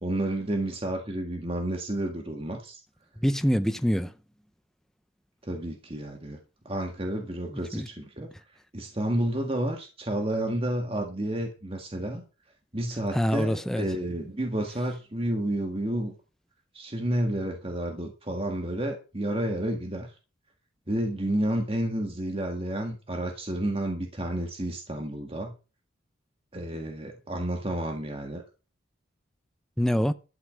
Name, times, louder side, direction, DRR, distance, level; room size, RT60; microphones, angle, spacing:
voice 1, 0.0-2.8 5.4-6.4 6.7-8.3 8.7-12.2 12.7-16.1 16.7-20.1 20.9-25.5 26.5-28.4, right 1 dB, 25° right, 1.8 m, -30 dB
voice 2, 3.2-4.1 7.5-7.9 13.1-13.8 29.8-30.1, equal, ahead, 0.6 m, -25 dB
13.0 x 5.8 x 7.6 m
head